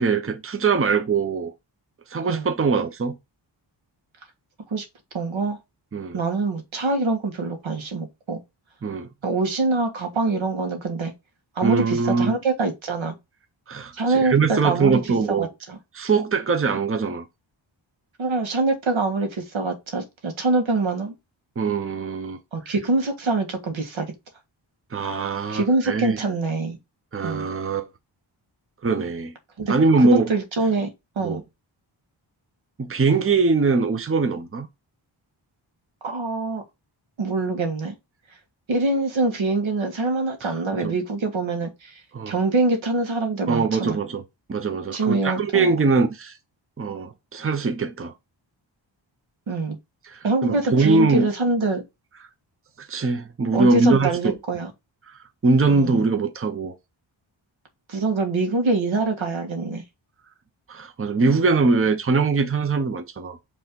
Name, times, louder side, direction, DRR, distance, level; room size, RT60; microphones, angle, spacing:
voice 1, 0.0-1.5 2.1-3.2 5.9-6.2 8.8-9.1 11.6-12.3 13.7-15.5 15.9-17.2 21.6-22.4 24.9-26.2 27.1-27.9 28.8-29.3 29.7-30.3 31.2-31.4 32.8-34.7 40.4-41.0 42.1-42.4 43.5-44.2 44.5-46.4 46.8-48.1 50.0-51.3 52.8-54.3 55.1-56.7 60.7-63.4, right 4 dB, 30° right, 0.9 m, -22 dB
voice 2, 5.1-5.6 6.1-8.4 9.2-11.1 11.6-13.1 13.9-15.8 18.2-21.1 22.5-24.1 25.5-26.8 27.2-27.5 29.6-30.9 31.2-31.4 36.0-36.6 37.2-38.0 38.7-42.0 42.3-44.0 44.9-45.9 49.5-49.8 50.2-51.8 53.5-54.7 55.7-56.0 57.9-59.8, right 3 dB, 80° right, 1.8 m, -24 dB
5.6 x 3.4 x 5.3 m
cardioid pair, 60°, 47 cm